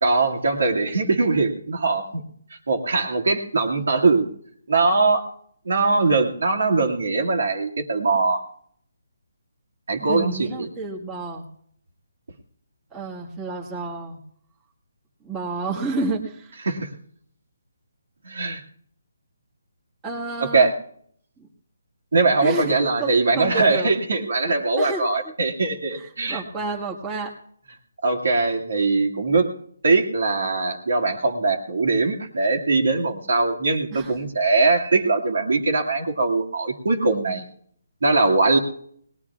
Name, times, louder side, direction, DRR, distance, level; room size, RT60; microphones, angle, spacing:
voice 1, 0.0-2.2 2.7-4.3 4.7-5.3 5.7-8.4 9.9-10.7 16.7-16.9 18.2-18.6 20.4-20.7 22.1-26.4 28.0-29.5 29.8-37.4 38.0-38.6, right 3 dB, 75° right, 1 dB, 2.2 m, -21 dB
voice 2, 10.0-11.4 12.9-14.2 15.2-16.6 20.0-20.7 21.4-21.5 22.4-23.9 24.4-25.3 25.9-27.3 33.9-34.2, right 3 dB, 15° right, -4 dB, 1.6 m, -31 dB
21.0 x 19.0 x 2.4 m, 0.64 s
hypercardioid pair, 160°, 0 cm